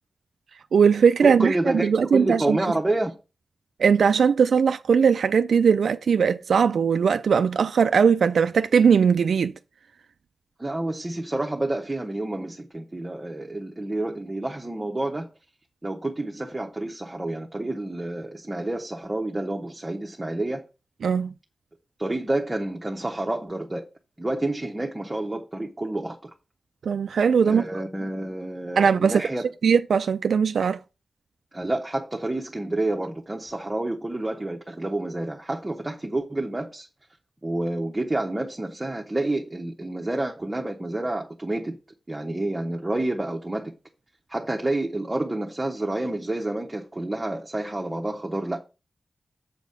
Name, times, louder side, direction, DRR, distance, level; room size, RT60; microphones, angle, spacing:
voice 1, 0.7-1.6 1.8-2.6 3.8-9.5 21.0-21.3 26.9-27.6 28.8-29.2 29.6-30.8, right 6 dB, 85° right, 0.3 m, -19 dB
voice 2, 1.2-3.2 10.6-15.3 15.8-20.6 22.0-23.8 24.2-26.3 27.4-29.5 31.5-36.9 37.4-41.8 42.1-43.7 44.3-48.6, right 2 dB, 15° right, 0.9 m, -29 dB
7.2 x 4.1 x 6.6 m
wide cardioid pair, 130°, 0 cm